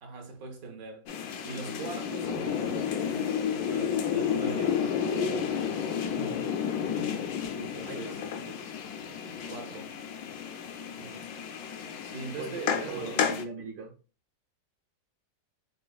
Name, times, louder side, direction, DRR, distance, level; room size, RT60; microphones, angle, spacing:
voice 1, 0.0-1.1 1.4-5.4 7.6-8.2 9.5-9.9 12.0-13.2, right 4 dB, 60° right, 1.2 m, -41 dB
sound 1, 1.1-13.4, left 7 dB, 70° left, 1.0 m, -31 dB
voice 2, 6.1-6.5 7.4-8.1 8.5-8.6 11.0-11.3 12.4-13.9, right 3 dB, 90° right, 1.7 m, -42 dB
6.5 x 2.5 x 2.3 m
omnidirectional pair, 1.9 m